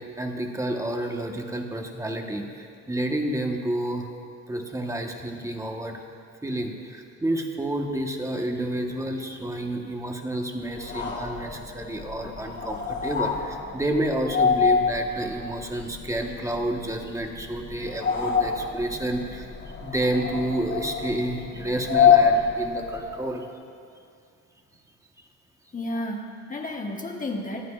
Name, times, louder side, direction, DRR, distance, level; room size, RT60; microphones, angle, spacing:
voice 1, 0.0-4.1 4.5-6.0 6.4-19.5 19.8-23.5, right 1 dB, 10° right, 2 dB, 1.2 m, -30 dB
sound 1, 10.7-23.3, left 6 dB, 45° left, 2.3 m, -26 dB
voice 2, 25.7-27.7, left 1 dB, 25° left, 1 dB, 1.2 m, -32 dB
24.0 x 9.3 x 2.5 m, 2.3 s
cardioid pair, 90°, 30 cm